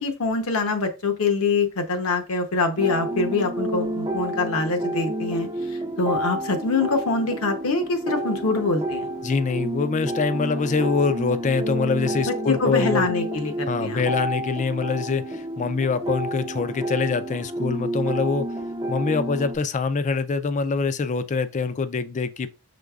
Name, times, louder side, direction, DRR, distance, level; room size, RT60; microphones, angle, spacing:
voice 1, 0.0-5.5 6.0-9.1 12.3-14.0, left 3 dB, 70° left, 0.8 m, -24 dB
sound 1, 2.8-19.6, right 1 dB, 20° right, 0.5 m, -30 dB
voice 2, 9.2-13.1 13.7-18.5 18.9-22.5, left 4 dB, 35° left, 0.3 m, -24 dB
5.1 x 3.9 x 2.3 m
head